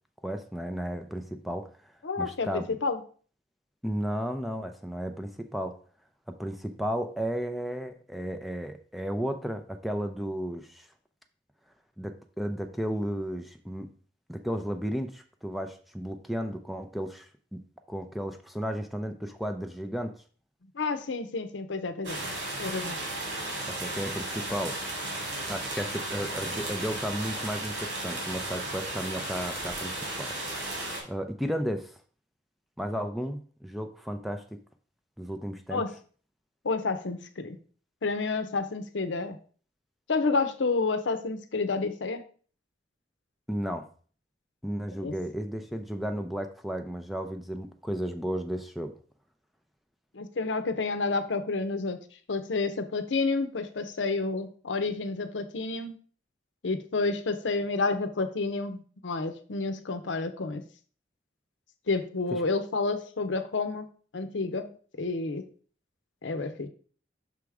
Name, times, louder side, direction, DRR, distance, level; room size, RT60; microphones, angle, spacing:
voice 1, 0.2-1.9 2.2-2.8 3.8-5.8 6.3-10.9 12.0-13.9 14.3-17.6 17.9-20.2 23.7-24.8 25.5-30.4 31.1-32.0 32.8-34.4 35.2-35.8 43.5-43.9 44.6-48.9 62.3-62.4, equal, ahead, 6 dB, 0.4 m, -34 dB
voice 2, 2.0-3.0 20.7-23.0 35.7-35.9 36.6-37.6 38.0-39.4 40.1-42.2 45.0-45.1 50.1-52.0 52.3-56.0 56.6-60.6 61.9-63.9 64.1-64.7 65.0-65.5 66.2-66.7, left 3 dB, 85° left, 9 dB, 0.7 m, -30 dB
sound 1, 22.0-31.0, right 1 dB, 85° right, 2.4 m, -34 dB
6.1 x 3.5 x 4.7 m, 0.43 s
head